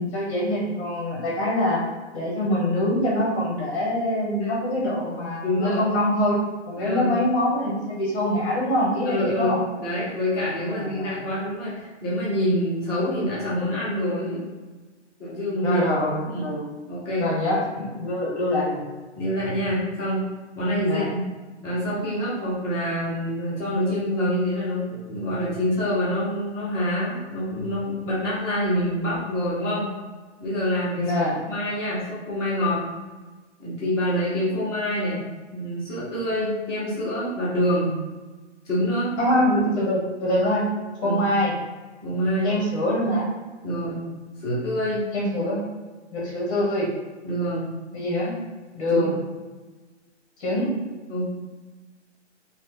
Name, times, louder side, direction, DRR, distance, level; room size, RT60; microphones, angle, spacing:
voice 1, 0.0-1.8 2.1-6.4 6.7-9.6 10.7-11.1 15.6-16.6 17.2-18.8 20.8-21.1 31.0-31.4 39.2-40.6 41.0-41.5 42.4-43.3 45.1-45.6 46.1-46.9 47.9-48.3 48.7-49.1 50.4-50.7, left 1 dB, 20° left, -4 dB, 1.2 m, -24 dB
voice 2, 5.4-5.8 6.8-7.1 9.0-14.4 15.2-15.8 16.3-16.5 16.9-17.2 19.1-20.2 20.6-21.2 21.6-29.9 30.4-31.1 31.5-32.8 33.6-35.2 35.5-37.9 38.6-39.1 41.0-41.2 42.0-42.5 43.6-44.0 44.4-45.0 47.2-47.7 48.9-49.1 51.1-51.2, equal, 5° right, -16 dB, 0.5 m, -26 dB
3.0 x 2.6 x 3.8 m, 1.3 s
hypercardioid pair, 160°, 35 cm